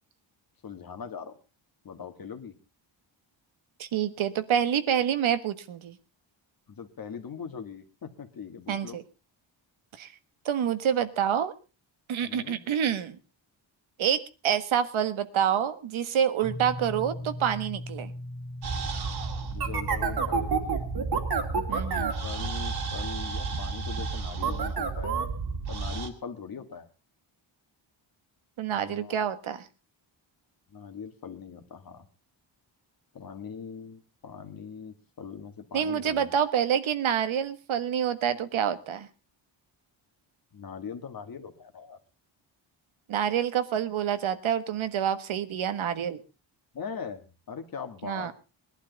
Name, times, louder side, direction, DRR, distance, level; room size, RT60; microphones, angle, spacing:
voice 1, 0.6-1.4 1.8-2.5 6.7-9.0 12.2-12.6 19.5-20.9 22.2-25.2 25.7-26.9 28.7-29.2 30.7-32.1 33.1-36.3 40.5-42.0 46.7-48.3, left 6 dB, 45° left, 7 dB, 1.9 m, -41 dB
voice 2, 3.8-6.0 8.7-9.0 10.0-10.1 10.4-11.5 12.1-13.2 14.0-18.1 21.7-22.1 28.6-29.7 35.7-39.1 43.1-46.2 48.0-48.3, right 9 dB, 80° right, 10 dB, 1.5 m, -27 dB
sound 1, 16.4-21.5, left 1 dB, 5° left, 2.4 m, -40 dB
sound 2, 18.6-26.1, right 4 dB, 50° right, 2.4 m, -30 dB
21.0 x 11.5 x 4.0 m, 0.32 s
wide cardioid pair, 170°, 47 cm